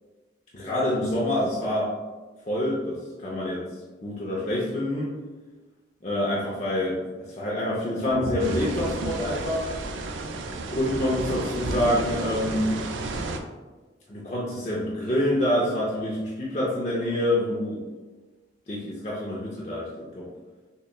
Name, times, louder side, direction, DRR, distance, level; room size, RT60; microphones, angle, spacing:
voice 1, 0.5-1.9 2.5-3.0 3.2-3.6 4.0-5.1 6.0-7.0 7.3-9.6 10.7-12.7 14.1-17.8 18.7-20.2, left 1 dB, 40° left, -6 dB, 0.6 m, -26 dB
sound 1, 8.1-10.4, equal, 10° left, 0.8 m, -36 dB
sound 2, 8.4-13.4, right 2 dB, 80° right, 0.4 m, -32 dB
6.5 x 2.2 x 2.3 m, 1.2 s
head